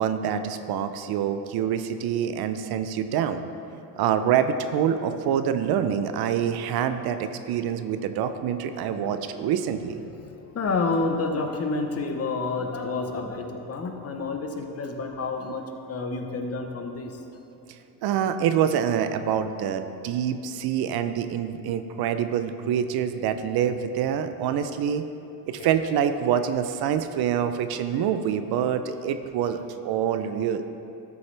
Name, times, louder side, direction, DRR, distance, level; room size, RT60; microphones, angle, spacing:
voice 1, 0.0-3.4 4.0-10.0 18.0-25.0 25.5-30.6, right 8 dB, 60° right, 9 dB, 0.6 m, -26 dB
voice 2, 10.1-17.2 25.6-25.7, left 3 dB, 35° left, 4 dB, 0.9 m, -29 dB
13.0 x 7.0 x 3.3 m, 2.8 s
cardioid pair, 115°, 44 cm